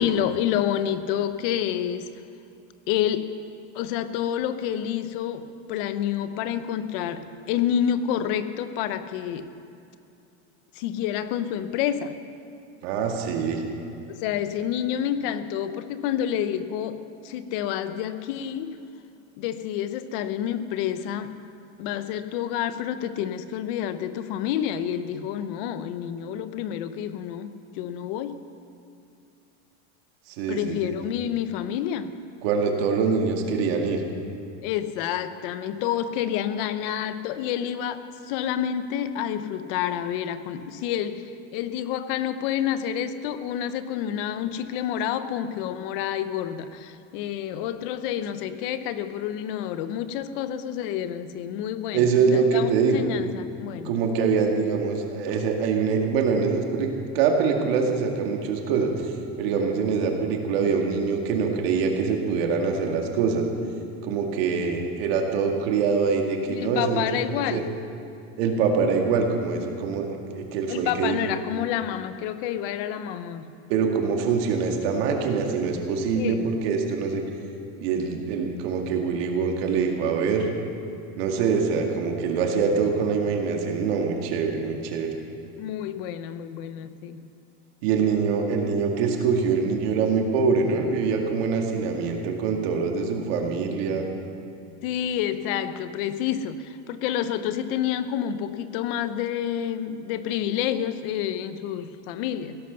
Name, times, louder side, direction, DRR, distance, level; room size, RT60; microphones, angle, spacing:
voice 1, 0.0-2.1 2.9-3.3 3.7-9.5 10.8-12.2 14.1-17.0 17.2-18.8 19.4-21.4 21.8-28.4 30.5-32.2 34.6-53.9 66.5-67.7 70.7-73.5 76.1-76.5 85.6-87.2 94.8-102.6, left 10 dB, 55° left, 12 dB, 0.9 m, -29 dB
voice 2, 12.8-13.6 30.3-30.9 32.4-34.0 51.9-53.1 53.8-56.9 57.1-63.5 64.0-67.1 67.5-67.6 68.4-70.1 70.3-71.3 73.7-77.2 77.8-80.5 81.2-85.1 87.8-94.0, right 5 dB, 65° right, 2 dB, 2.1 m, -24 dB
16.5 x 11.0 x 6.9 m, 2.6 s
supercardioid pair, 165°, 33 cm